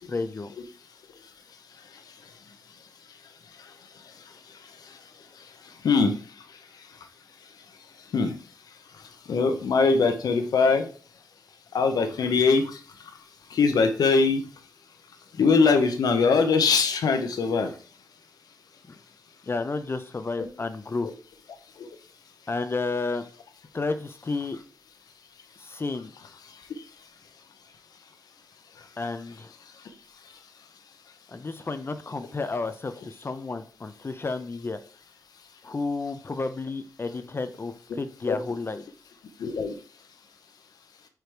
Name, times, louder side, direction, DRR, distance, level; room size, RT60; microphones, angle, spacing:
voice 1, 0.1-0.5 18.9-19.0 19.4-21.1 22.5-23.2 23.7-24.6 25.6-26.1 29.0-29.5 31.3-34.8 35.6-38.8, left 3 dB, 35° left, 10 dB, 0.6 m, -31 dB
voice 2, 9.3-10.8 11.7-12.6 13.6-14.4 15.4-17.7 38.3-38.4 39.4-39.7, left 4 dB, 85° left, 7 dB, 0.9 m, -21 dB
5.0 x 4.7 x 4.5 m, 0.40 s
cardioid pair, 75°, 7 cm